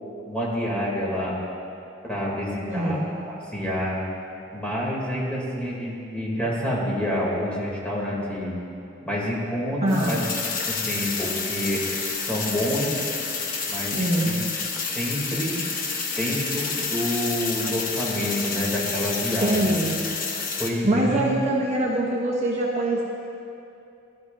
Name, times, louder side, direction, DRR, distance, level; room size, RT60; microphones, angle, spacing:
voice 1, 0.2-1.4 2.0-3.0 3.3-4.0 4.5-8.5 9.0-10.2 10.7-11.8 12.2-13.1 13.7-14.3 14.9-15.6 16.2-19.8 20.6-21.3, equal, 5° left, -6 dB, 3.1 m, -28 dB
voice 2, 2.7-3.0 9.8-10.1 13.9-14.3 19.4-19.9 20.8-23.0, right 1 dB, 35° right, -3 dB, 1.1 m, -23 dB
sound 1, 9.9-20.7, left 4 dB, 45° left, 1.2 m, -29 dB
19.5 x 12.0 x 2.8 m, 2.7 s
head